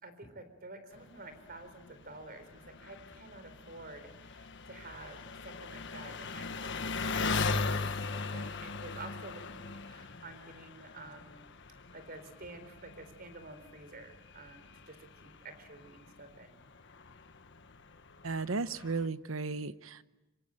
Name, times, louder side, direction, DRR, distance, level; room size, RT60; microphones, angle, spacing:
voice 1, 0.0-11.4 11.7-16.6, right 2 dB, 45° right, 10 dB, 4.1 m, -50 dB
Engine, 0.9-19.1, left 4 dB, 60° left, 1.5 m, -40 dB
voice 2, 18.2-20.0, right 3 dB, 75° right, 14 dB, 1.0 m, -35 dB
26.0 x 25.0 x 9.0 m, 1.0 s
head